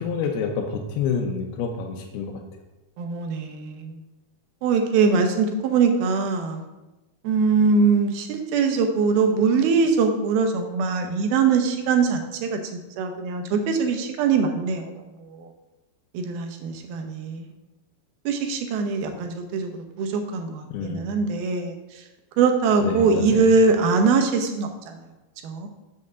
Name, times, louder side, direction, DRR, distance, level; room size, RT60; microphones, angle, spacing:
voice 1, 0.0-2.6 20.7-21.1 22.8-23.5, left 6 dB, 85° left, 2 dB, 2.7 m, -28 dB
voice 2, 3.0-4.0 4.6-6.7 7.2-12.6 13.0-14.9 15.2-15.5 16.1-17.5 18.3-21.7 22.4-24.7 25.4-25.7, right 5 dB, 80° right, 5 dB, 2.8 m, -22 dB
7.0 x 5.4 x 6.7 m, 1.0 s
omnidirectional pair, 4.4 m